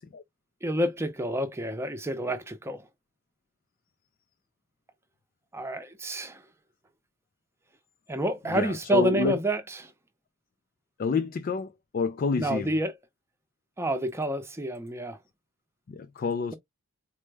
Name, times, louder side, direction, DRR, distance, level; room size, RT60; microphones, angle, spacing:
voice 1, 0.6-2.9 5.5-6.4 8.1-9.9 12.4-12.9 13.8-15.2, right 1 dB, 10° right, 0.6 m, -29 dB
voice 2, 8.5-9.4 11.0-12.7 15.9-16.5, left 4 dB, 45° left, 0.3 m, -28 dB
4.4 x 2.2 x 3.2 m
head